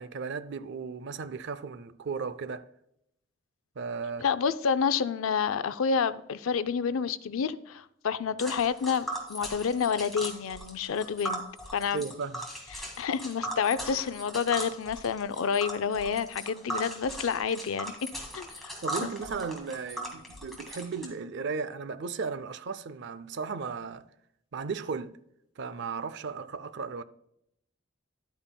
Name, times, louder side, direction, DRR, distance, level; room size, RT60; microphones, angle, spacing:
voice 1, 0.0-2.7 3.8-4.3 11.9-12.4 18.8-24.1 24.5-25.2 25.6-27.0, right 5 dB, 60° right, 0.5 m, -35 dB
voice 2, 4.2-11.4 11.7-12.0 12.7-17.9 18.3-18.7 19.0-19.1, left 6 dB, 90° left, 0.5 m, -29 dB
Tick, 8.4-21.1, right 1 dB, ahead, 1.9 m, -38 dB
11.5 x 8.8 x 2.2 m
head